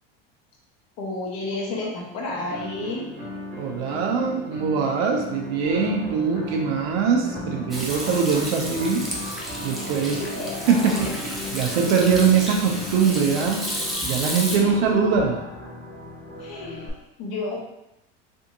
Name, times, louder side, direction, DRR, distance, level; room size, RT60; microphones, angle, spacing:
voice 1, 1.0-3.1 10.0-10.5 14.5-15.0 16.2-17.7, left 2 dB, 55° left, -3 dB, 1.1 m, -32 dB
sound 1, 2.3-13.9, left 1 dB, 20° right, 1.2 m, -38 dB
voice 2, 3.6-9.1 9.6-10.2 10.7-11.0 11.5-13.6 14.1-15.4, right 6 dB, 75° right, 2 dB, 0.8 m, -22 dB
sound 2, 5.6-16.9, left 1 dB, 30° left, 1.2 m, -37 dB
Hands / Sink (filling or washing), 7.7-14.6, equal, ahead, 0.5 m, -32 dB
3.5 x 2.7 x 2.6 m, 0.85 s
supercardioid pair, 110°, 31 cm